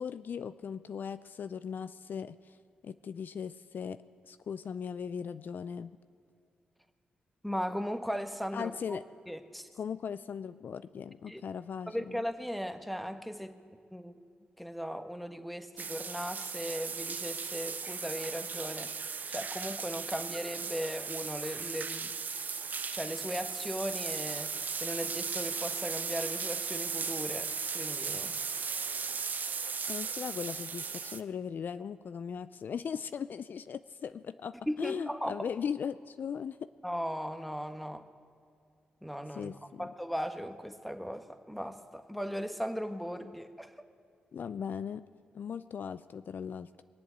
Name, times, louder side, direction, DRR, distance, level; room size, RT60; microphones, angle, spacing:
voice 1, 0.0-2.6 2.8-4.0 4.2-6.0 8.5-9.0 9.7-12.2 29.9-36.7 39.3-39.9 44.3-45.1 45.3-46.8, left 7 dB, 60° left, 14 dB, 0.4 m, -38 dB
voice 2, 7.4-9.0 9.3-9.7 11.3-11.4 11.9-13.6 13.9-14.2 14.6-18.9 19.3-22.1 22.9-24.5 24.8-28.4 34.7-35.3 36.8-38.1 39.0-39.5 39.8-43.7, equal, ahead, 8 dB, 1.3 m, -37 dB
sound 1, 15.8-31.2, right 5 dB, 55° right, 0.8 m, -37 dB
21.5 x 7.8 x 8.2 m, 2.4 s
supercardioid pair, 45°, 4 cm